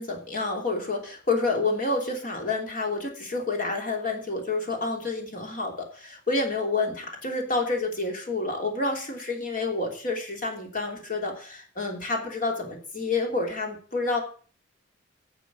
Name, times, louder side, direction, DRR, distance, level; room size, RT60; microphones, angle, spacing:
voice 1, 0.0-14.2, left 3 dB, 45° left, 2 dB, 3.1 m, -29 dB
10.5 x 6.7 x 8.2 m, 0.40 s
head